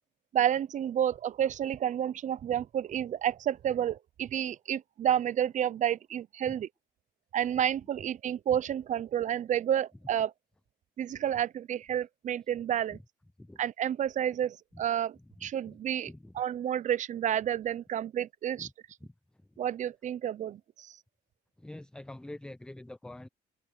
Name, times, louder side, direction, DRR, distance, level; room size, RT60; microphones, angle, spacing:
voice 1, 0.3-6.7 7.3-10.3 11.0-13.0 13.6-18.7 19.6-21.0, right 10 dB, 45° right, 0.7 m, -30 dB
voice 2, 15.4-15.8 16.1-16.3 18.6-18.7 19.0-19.1 21.6-23.3, left 1 dB, 5° left, 0.6 m, -45 dB
cardioid pair, 110°, 17 cm